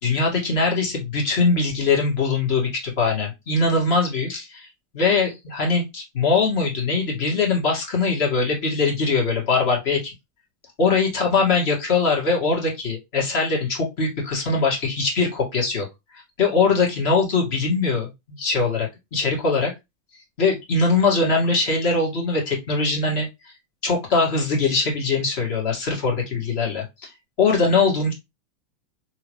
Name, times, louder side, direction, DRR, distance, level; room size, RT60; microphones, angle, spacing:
voice 1, 0.0-4.7 4.9-10.1 10.8-15.9 16.1-19.7 20.4-23.5 23.8-27.1 27.4-28.1, left 4 dB, 55° left, -1 dB, 2.0 m, -22 dB
3.6 x 2.9 x 3.1 m, 0.21 s
supercardioid pair, 145°, 0 cm